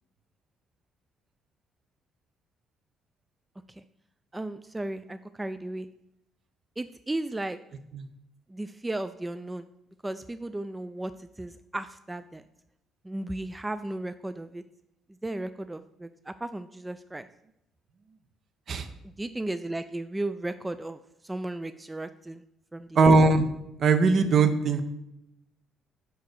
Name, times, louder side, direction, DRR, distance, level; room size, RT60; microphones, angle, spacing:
voice 1, 4.3-5.9 6.8-7.6 8.5-9.7 10.0-12.4 13.0-14.6 15.2-17.3 19.2-22.4 22.7-23.1, right 2 dB, 15° right, 11 dB, 0.3 m, -35 dB
voice 2, 23.0-23.5 23.8-24.8, right 3 dB, 55° right, 8 dB, 0.7 m, -20 dB
5.1 x 4.7 x 6.1 m, 0.85 s
supercardioid pair, 70°, 0 cm